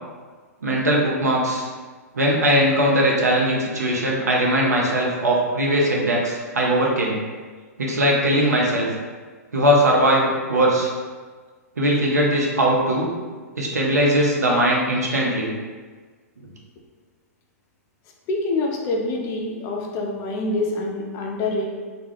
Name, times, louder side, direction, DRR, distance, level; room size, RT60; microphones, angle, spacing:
voice 1, 0.6-1.7 2.1-7.2 7.8-8.9 9.5-10.9 11.8-13.1 13.6-15.5, right 1 dB, 80° right, -2 dB, 0.6 m, -20 dB
voice 2, 18.3-21.7, left 2 dB, 30° left, 0 dB, 0.4 m, -26 dB
2.3 x 2.2 x 3.3 m, 1.4 s
figure-of-eight pair, 110°, 9 cm